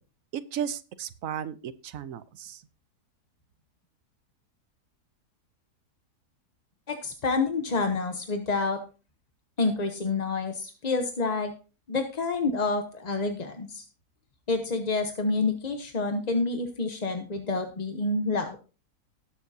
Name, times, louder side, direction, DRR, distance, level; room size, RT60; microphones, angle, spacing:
voice 1, 0.3-2.6, right 9 dB, 65° right, 14 dB, 1.0 m, -35 dB
voice 2, 6.9-8.8 9.6-11.5 11.9-13.8 14.5-18.6, left 3 dB, 35° left, 6 dB, 0.7 m, -28 dB
19.0 x 7.3 x 2.7 m, 0.33 s
omnidirectional pair, 1.7 m